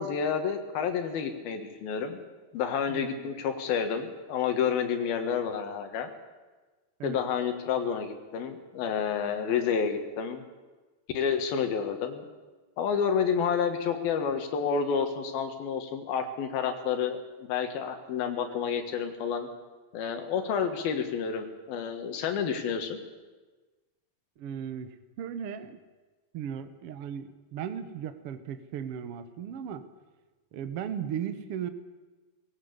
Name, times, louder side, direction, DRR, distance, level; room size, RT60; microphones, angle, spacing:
voice 1, 0.0-2.2 2.5-6.1 7.0-10.4 11.2-12.3 12.8-17.2 17.5-19.5 19.9-23.0, left 7 dB, 85° left, 6 dB, 3.4 m, -29 dB
voice 2, 2.9-3.4 7.0-7.2 24.4-25.8 26.3-29.9 30.5-31.7, right 8 dB, 65° right, 10 dB, 1.4 m, -37 dB
19.5 x 17.5 x 8.1 m, 1.3 s
omnidirectional pair, 4.2 m